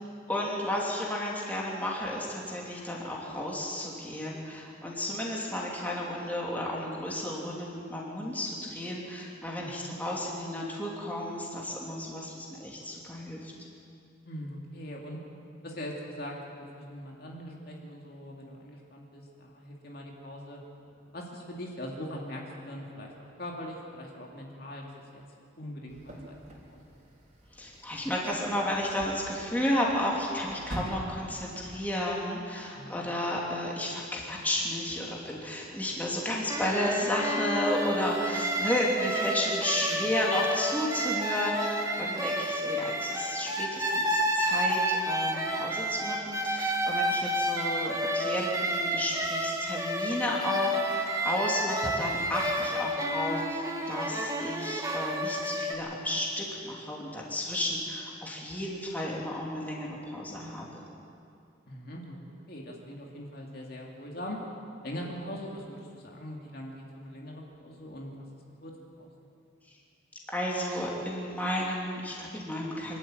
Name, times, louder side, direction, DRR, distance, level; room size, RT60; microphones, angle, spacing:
voice 1, 0.3-13.5 27.5-60.8 70.3-73.0, left 1 dB, 10° left, -3 dB, 2.9 m, -32 dB
voice 2, 9.6-9.9 14.3-15.2 15.6-20.6 21.1-23.1 23.4-25.2 25.6-26.8 32.7-32.9 61.7-64.4 64.8-68.2 68.6-69.1, equal, 50° left, -1 dB, 2.5 m, -41 dB
sound 1, 25.9-31.8, equal, 35° right, 3.7 m, -44 dB
sound 2, 36.5-55.7, equal, 15° right, 1.5 m, -30 dB
25.0 x 12.5 x 9.0 m, 2.5 s
head